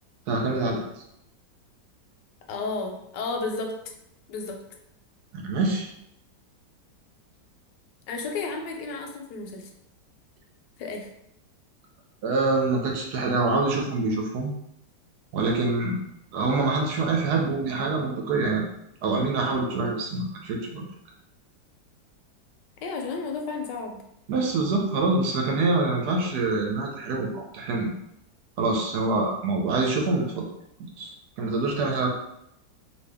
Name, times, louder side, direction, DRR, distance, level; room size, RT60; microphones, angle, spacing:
voice 1, 0.3-0.8 5.3-5.9 12.2-14.5 15.3-16.0 16.3-18.6 19.0-20.8 24.3-27.9 28.6-30.4 31.0-31.1 31.4-32.1, right 3 dB, 70° right, 0 dB, 1.2 m, -25 dB
voice 2, 2.5-3.7 4.3-4.6 8.1-9.7 10.8-11.1 22.8-24.0, left 4 dB, 80° left, 2 dB, 1.2 m, -32 dB
2.8 x 2.7 x 3.4 m, 0.79 s
omnidirectional pair, 1.9 m